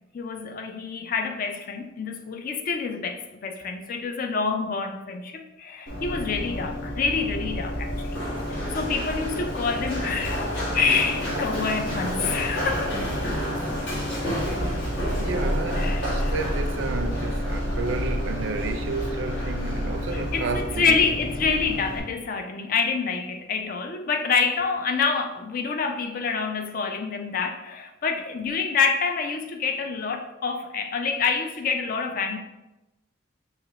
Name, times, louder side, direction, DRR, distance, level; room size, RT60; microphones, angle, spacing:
voice 1, 0.1-8.2 8.7-12.9 15.8-16.3 20.1-32.4, left 5 dB, 45° left, 0.3 m, -27 dB
Run, 5.9-22.0, equal, 65° left, 1.3 m, -29 dB
voice 2, 15.1-21.0, right 3 dB, 70° right, 0.4 m, -31 dB
5.8 x 2.9 x 2.9 m
head